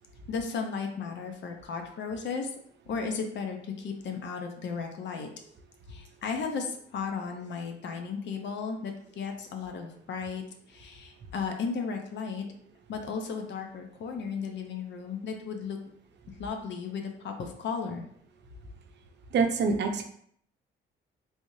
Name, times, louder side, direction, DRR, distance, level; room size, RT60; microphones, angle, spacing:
voice 1, 0.3-2.5 2.9-5.3 5.9-12.5 12.9-15.8 16.4-18.0, left 5 dB, 65° left, 4 dB, 0.7 m, -35 dB
voice 2, 19.3-20.0, right 4 dB, 60° right, 5 dB, 0.6 m, -25 dB
3.5 x 3.0 x 2.7 m, 0.66 s
cardioid pair, 90°, 20 cm